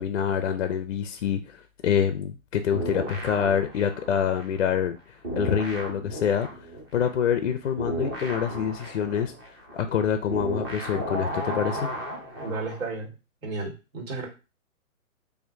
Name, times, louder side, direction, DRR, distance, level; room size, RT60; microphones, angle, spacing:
voice 1, 0.0-1.4 1.8-5.0 5.3-6.5 6.9-9.3 9.7-11.9, left 8 dB, 50° left, 8 dB, 0.5 m, -26 dB
sound 1, 2.7-5.0 5.2-12.8, right 1 dB, 15° right, 0.6 m, -34 dB
voice 2, 12.4-13.1 13.4-14.3, right 3 dB, 65° right, 0 dB, 2.0 m, -33 dB
4.3 x 2.6 x 2.6 m, 0.30 s
hypercardioid pair, 155°, 43 cm